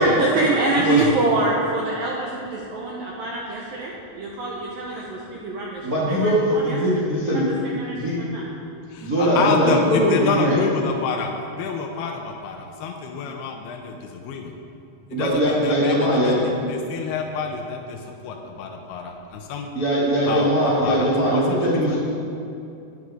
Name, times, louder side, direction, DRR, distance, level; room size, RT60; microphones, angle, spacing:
voice 1, 0.0-6.8 7.6-8.5, right 2 dB, 80° right, -3 dB, 2.0 m, -25 dB
voice 2, 0.7-1.1 8.9-14.5 15.1-16.3 16.7-19.7 20.2-21.1 21.3-22.0, left 5 dB, 90° left, 3 dB, 2.2 m, -28 dB
voice 3, 5.8-7.5 7.9-8.2 9.0-10.6 15.1-16.4 19.7-22.0, equal, 60° right, -9 dB, 0.9 m, -20 dB
12.0 x 10.5 x 4.9 m, 2.6 s
omnidirectional pair, 5.6 m